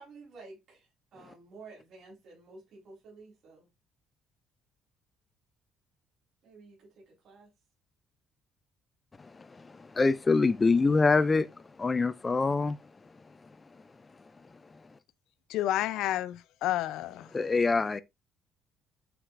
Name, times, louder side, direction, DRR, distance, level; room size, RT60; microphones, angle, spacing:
voice 1, 0.0-3.7 6.4-7.5, right 3 dB, 45° right, 4.1 m, -52 dB
voice 2, 9.2-15.0 17.3-18.0, left 4 dB, 15° left, 0.3 m, -27 dB
voice 3, 15.5-17.3, left 13 dB, 75° left, 0.5 m, -30 dB
8.9 x 4.7 x 2.5 m
cardioid pair, 175°, 0 cm